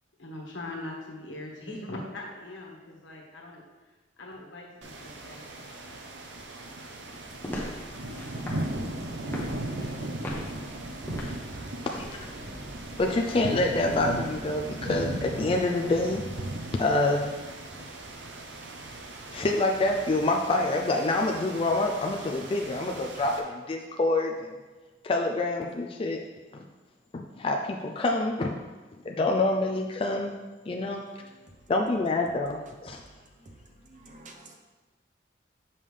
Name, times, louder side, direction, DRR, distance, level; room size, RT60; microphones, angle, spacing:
voice 1, 0.2-3.6 4.2-5.5, left 1 dB, 90° left, 1.4 m, -41 dB
sound 1, 4.8-23.4, right 1 dB, 75° right, 0.7 m, -37 dB
sound 2, 7.2-14.4, equal, 10° left, 0.9 m, -41 dB
voice 2, 13.0-16.5 16.7-17.3 19.3-24.5 25.0-26.2 26.5-26.6 27.1-28.6 29.0-30.3 30.7-31.0 31.7-33.0, left 2 dB, 30° left, 0.4 m, -27 dB
voice 3, 33.2-33.5 33.8-34.5, right 2 dB, 45° right, 0.8 m, -50 dB
7.0 x 5.5 x 3.3 m
head